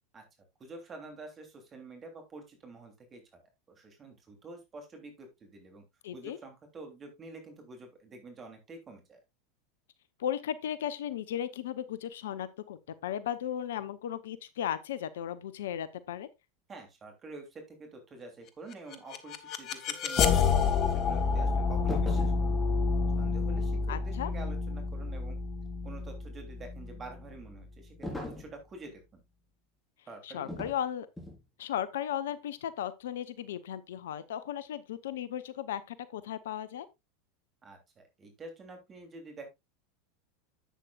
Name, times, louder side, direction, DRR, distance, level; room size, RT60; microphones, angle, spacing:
voice 1, 0.6-3.2 3.7-5.8 6.1-9.2 16.7-22.7 23.2-25.4 25.8-29.2 30.1-30.6 37.6-39.5, right 3 dB, 30° right, 3.0 m, -48 dB
voice 2, 6.0-6.4 10.2-16.3 23.9-24.3 30.2-31.1 31.6-36.9, left 10 dB, 70° left, 0.7 m, -36 dB
sound 1, 18.7-27.7, left 5 dB, 45° left, 1.2 m, -29 dB
sound 2, 21.9-22.5 28.0-28.5 30.5-30.8 31.2-31.4, left 1 dB, 5° left, 4.1 m, -38 dB
11.0 x 8.3 x 2.4 m
figure-of-eight pair, 85°, 0 cm